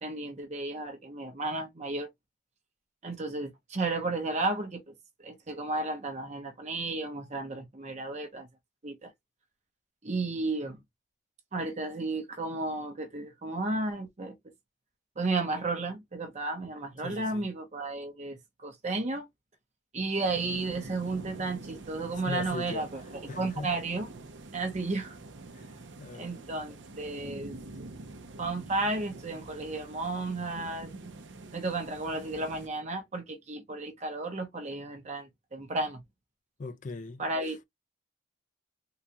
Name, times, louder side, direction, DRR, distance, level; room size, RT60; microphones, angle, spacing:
voice 1, 0.0-2.1 3.0-4.9 5.2-8.5 8.8-9.1 10.0-10.8 11.5-14.3 15.2-19.3 19.9-23.0 23.4-24.1 24.5-25.2 26.1-27.9 28.4-30.9 31.5-36.0 37.2-37.6, right 2 dB, 35° right, 0.8 m, -33 dB
voice 2, 17.0-17.4 22.3-22.8 23.3-23.7 26.0-26.4 36.6-37.2, left 3 dB, 40° left, 0.4 m, -38 dB
sound 1, 20.2-32.7, right 2 dB, 70° right, 0.6 m, -46 dB
3.8 x 2.3 x 2.8 m
head